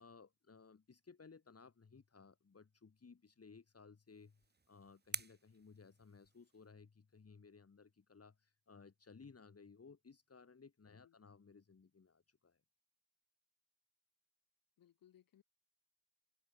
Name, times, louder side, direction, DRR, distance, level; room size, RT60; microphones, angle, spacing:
voice 1, 0.0-12.6, left 5 dB, 45° left, 3.2 m, -60 dB
sound 1, 4.1-6.7, right 4 dB, 30° right, 1.5 m, -50 dB
voice 2, 14.8-15.4, left 11 dB, 90° left, 6.9 m, -67 dB
supercardioid pair, 50°, 33 cm